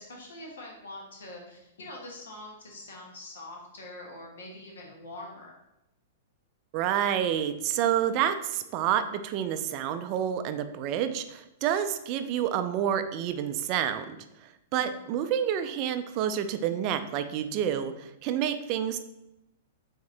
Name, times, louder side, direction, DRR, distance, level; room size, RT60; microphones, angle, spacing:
voice 1, 0.0-5.5 14.8-15.2, left 1 dB, 85° left, -1 dB, 1.3 m, -44 dB
voice 2, 6.7-14.2 14.4-19.0, right 9 dB, 40° right, 10 dB, 0.3 m, -29 dB
3.7 x 3.5 x 3.3 m, 0.90 s
hypercardioid pair, 140°, 0 cm